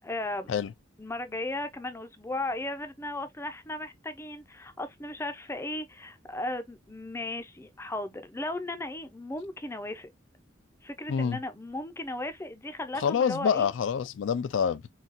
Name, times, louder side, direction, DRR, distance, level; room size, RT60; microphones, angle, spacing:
voice 1, 0.0-0.5 1.0-10.1 10.8-13.7, left 2 dB, 15° left, 0.4 m, -36 dB
voice 2, 11.1-11.4 13.0-14.9, left 7 dB, 85° left, 0.3 m, -27 dB
3.9 x 2.3 x 2.5 m
head